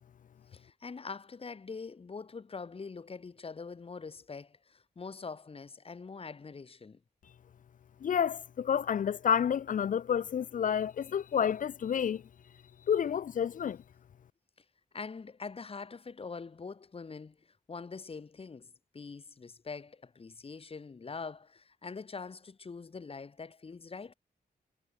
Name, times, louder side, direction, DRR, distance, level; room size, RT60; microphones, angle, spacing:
voice 1, 0.5-7.0 14.9-24.1, left 4 dB, 35° left, 1.9 m, -44 dB
voice 2, 8.0-12.2 12.9-13.8, left 8 dB, 55° left, 0.4 m, -29 dB
wide cardioid pair, 150°, 17 cm